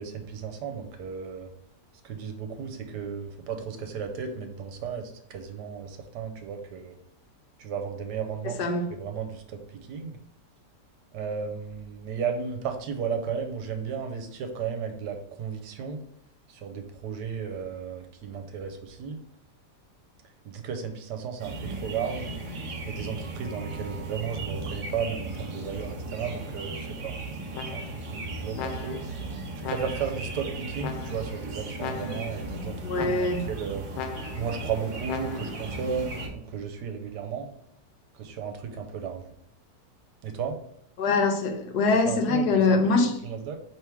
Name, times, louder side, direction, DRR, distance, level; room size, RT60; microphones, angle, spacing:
voice 1, 0.0-1.5 2.0-7.0 7.6-8.7 9.0-10.2 11.1-16.0 16.5-19.2 20.4-22.3 22.8-27.1 27.7-29.0 29.7-33.9 34.4-37.5 38.1-39.3 40.2-40.6 42.0-43.6, right 6 dB, 80° right, 5 dB, 1.2 m, -34 dB
voice 2, 8.6-8.9 32.8-33.5 41.0-43.1, left 3 dB, 75° left, 5 dB, 1.2 m, -23 dB
sound 1, 21.4-36.3, right 2 dB, 55° right, 1.1 m, -36 dB
sound 2, 27.5-28.1 28.6-29.2 29.6-30.3 30.8-31.4 31.8-32.4 32.9-33.5 33.9-34.6 35.1-35.7, left 6 dB, 90° left, 1.2 m, -38 dB
4.5 x 3.1 x 3.5 m, 0.73 s
omnidirectional pair, 1.8 m